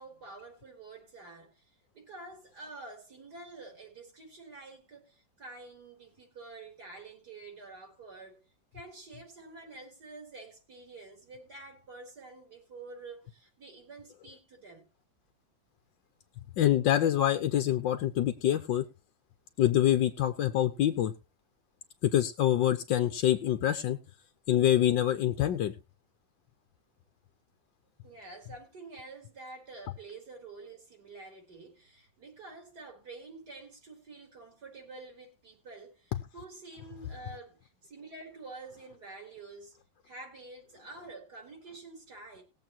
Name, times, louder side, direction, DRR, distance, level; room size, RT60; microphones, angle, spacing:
voice 1, 0.0-1.6 1.9-8.4 8.7-14.9 28.0-39.8 40.0-42.4, right 3 dB, 60° right, 4.3 m, -48 dB
voice 2, 16.6-18.8 19.6-21.1 22.0-24.0 24.5-25.7, left 11 dB, 85° left, 1.6 m, -26 dB
20.0 x 7.7 x 3.0 m
omnidirectional pair, 2.0 m